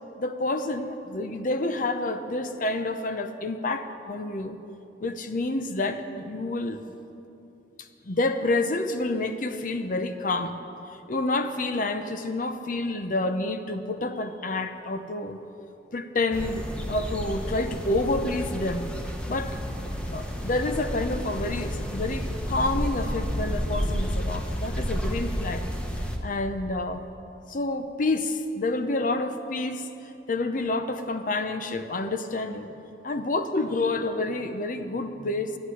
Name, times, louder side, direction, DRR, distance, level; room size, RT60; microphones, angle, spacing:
voice 1, 0.2-4.6 5.0-6.8 8.0-10.5 11.1-15.4 15.9-18.9 19.3-19.6 20.1-25.6 26.2-27.1 27.5-32.7 33.0-35.6, left 2 dB, 50° left, 8 dB, 0.7 m, -28 dB
sound 1, 16.3-26.2, equal, 5° left, 1.1 m, -31 dB
11.5 x 8.8 x 9.5 m, 2.8 s
head